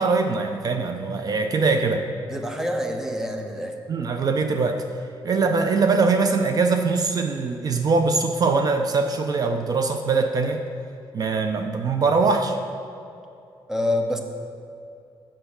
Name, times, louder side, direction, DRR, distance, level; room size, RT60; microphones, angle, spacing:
voice 1, 0.0-2.1 3.9-4.8 5.2-10.6 11.1-12.6, right 4 dB, 45° right, 5 dB, 0.5 m, -22 dB
voice 2, 2.3-3.8 13.7-14.2, left 1 dB, 5° right, 4 dB, 0.7 m, -26 dB
7.9 x 5.1 x 7.0 m, 2.6 s
wide cardioid pair, 140°, 9 cm